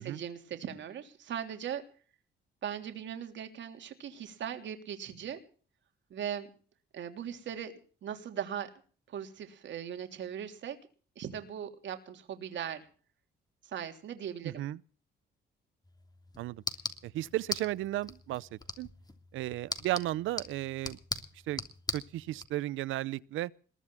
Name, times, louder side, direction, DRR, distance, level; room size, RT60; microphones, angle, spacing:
voice 1, 0.0-1.8 2.6-5.4 6.1-6.5 6.9-7.7 8.0-8.7 9.1-10.8 11.1-12.8 13.6-14.6, right 9 dB, 65° right, 3.3 m, -39 dB
voice 2, 14.4-14.8 16.4-16.6 17.0-18.9 19.3-21.0 21.5-21.6 21.9-23.5, right 15 dB, 85° right, 0.7 m, -34 dB
sound 1, 15.8-22.5, left 2 dB, 20° left, 3.0 m, -41 dB
21.5 x 7.2 x 9.0 m
cardioid pair, 90°, 20 cm